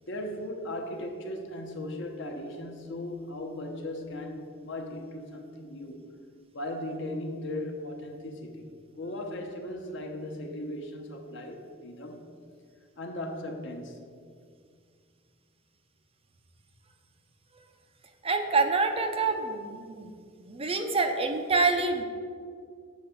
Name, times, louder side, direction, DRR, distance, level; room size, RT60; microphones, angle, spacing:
voice 1, 0.0-6.0 6.5-8.7 9.0-12.3 13.0-14.0, left 1 dB, 65° left, 3 dB, 0.9 m, -37 dB
voice 2, 18.2-20.1 20.4-22.0, right 3 dB, 30° right, 5 dB, 0.7 m, -26 dB
7.3 x 4.7 x 6.8 m, 2.2 s
head